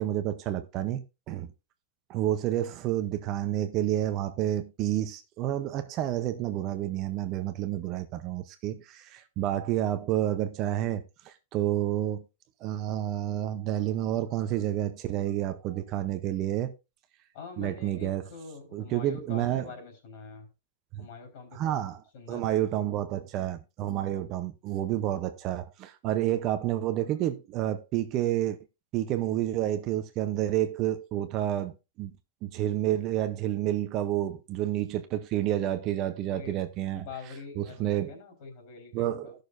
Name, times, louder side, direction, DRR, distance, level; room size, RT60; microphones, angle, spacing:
voice 1, 0.0-1.5 2.1-12.2 12.6-16.7 17.6-18.2 18.7-19.7 20.9-21.1 21.5-22.0 22.3-28.6 28.9-32.1 32.4-37.1 37.6-38.1 38.9-39.4, right 12 dB, 30° right, 0.7 m, -29 dB
voice 2, 17.3-20.5 21.0-21.8 22.1-22.7 36.3-36.6 36.9-39.3, left 4 dB, 45° left, 3.9 m, -44 dB
16.5 x 6.5 x 2.6 m
supercardioid pair, 170°, 0 cm